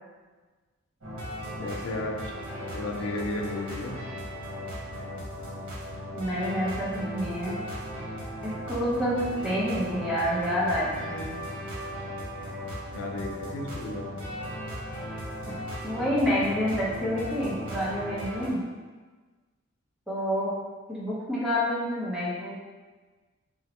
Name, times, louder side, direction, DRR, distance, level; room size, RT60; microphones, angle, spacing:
sound 1, 1.0-18.5, equal, 75° right, 1.0 m, -37 dB
voice 1, 1.6-2.3 2.7-4.0 12.9-14.1, left 2 dB, 80° left, 1 dB, 0.4 m, -33 dB
voice 2, 6.1-7.6 8.4-11.4 15.8-18.6 20.1-20.5 20.9-22.5, equal, ahead, -8 dB, 0.7 m, -28 dB
3.8 x 2.1 x 2.8 m, 1.3 s
head